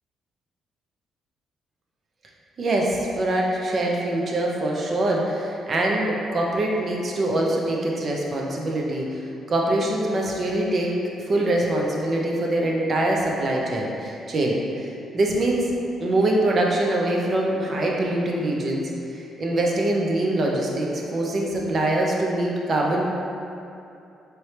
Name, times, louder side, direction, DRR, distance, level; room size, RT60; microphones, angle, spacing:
voice 1, 2.6-9.2 9.5-10.9 11.2-15.6 16.0-23.0, right 1 dB, 45° right, -2 dB, 0.7 m, -24 dB
4.4 x 3.2 x 3.2 m, 2.7 s
cardioid pair, 90°, 0 cm